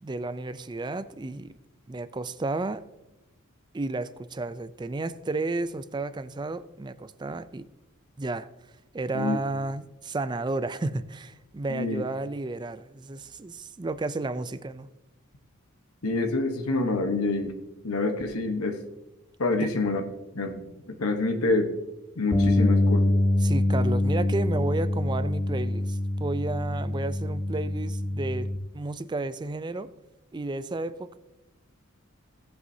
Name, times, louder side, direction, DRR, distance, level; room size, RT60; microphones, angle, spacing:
voice 1, 0.0-1.5 1.9-2.8 3.7-7.7 8.2-8.5 8.9-14.9 19.6-19.7 23.4-28.5 28.7-29.9 30.3-31.2, right 2 dB, 20° right, 14 dB, 0.4 m, -32 dB
voice 2, 11.7-12.0 16.0-17.5 17.8-18.8 19.4-20.0 20.3-21.7 22.2-23.2, left 3 dB, 90° left, 4 dB, 1.1 m, -27 dB
Bass guitar, 22.3-28.6, left 1 dB, 15° left, 1.0 m, -25 dB
17.0 x 8.1 x 2.7 m, 0.99 s
head